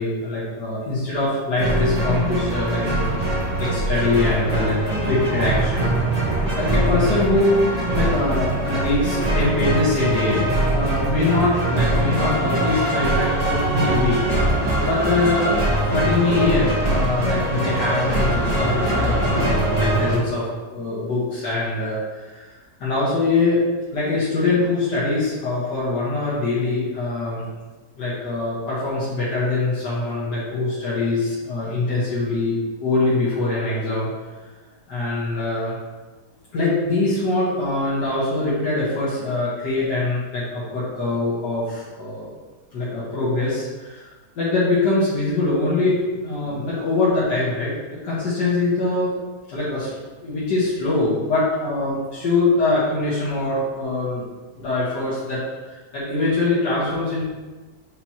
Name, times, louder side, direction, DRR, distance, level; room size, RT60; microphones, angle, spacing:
voice 1, 0.0-3.1 3.6-6.0 6.5-7.7 7.9-14.2 14.4-14.6 14.8-15.5 15.9-22.5 22.8-23.6 23.9-27.5 28.0-34.1 34.9-35.7 36.5-42.3 42.7-44.1 44.4-47.7 48.0-49.1 49.5-49.9 50.2-54.3 54.6-55.4 55.7-57.2, left 2 dB, 85° left, -10 dB, 2.1 m, -23 dB
sound 1, 1.6-20.2, right 1 dB, 25° right, 1.1 m, -22 dB
7.8 x 2.9 x 4.4 m, 1.3 s
omnidirectional pair, 1.8 m